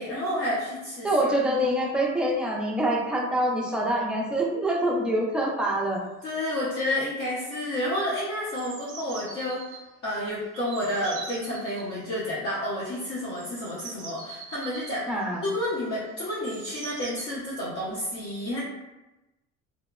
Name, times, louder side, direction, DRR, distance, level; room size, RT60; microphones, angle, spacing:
voice 1, 0.0-1.1 1.4-1.8 6.2-9.8 10.0-15.1 15.4-18.6, left 1 dB, 45° left, -8 dB, 0.7 m, -30 dB
voice 2, 1.0-6.0 15.1-15.4, right 1 dB, 5° right, -3 dB, 0.3 m, -25 dB
sound 1, 5.9-6.0 6.2-6.6 6.9-7.2 7.5-9.8 10.5-11.9 12.9-17.2, right 4 dB, 40° right, 0.7 m, -43 dB
2.8 x 2.1 x 2.3 m, 0.99 s
cardioid pair, 130°, 31 cm